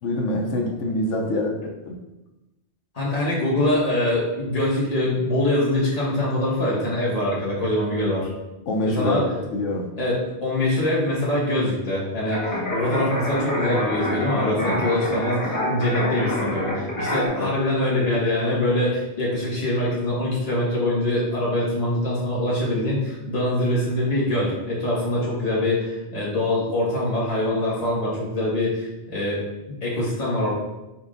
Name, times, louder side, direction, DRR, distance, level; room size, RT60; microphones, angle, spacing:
voice 1, 0.0-2.0 8.7-9.9 17.4-17.5, left 1 dB, 90° left, 0 dB, 1.0 m, -25 dB
voice 2, 2.9-8.3 8.8-9.2 10.0-29.4 29.8-30.5, left 1 dB, 35° left, -7 dB, 1.5 m, -24 dB
sound 1, 12.3-17.3, left 1 dB, 15° left, 1.1 m, -26 dB
5.6 x 3.5 x 2.5 m, 1.0 s
omnidirectional pair, 1.2 m